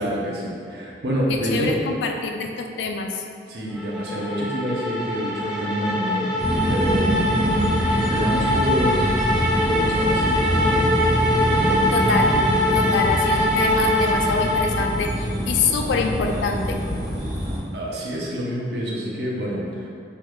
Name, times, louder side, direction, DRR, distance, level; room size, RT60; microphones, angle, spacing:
voice 1, 0.0-1.8 3.5-6.3 6.7-7.2 8.1-10.9 11.4-12.0 17.7-19.9, right 1 dB, 65° right, -4 dB, 0.6 m, -27 dB
voice 2, 1.3-3.2 11.9-12.4 12.7-16.8, left 4 dB, 75° left, 3 dB, 0.3 m, -25 dB
sound 1, 3.8-15.1, left 1 dB, 5° right, 0.4 m, -23 dB
sound 2, 6.4-17.6, equal, 30° right, 0.8 m, -25 dB
3.5 x 2.3 x 3.0 m, 2.4 s
head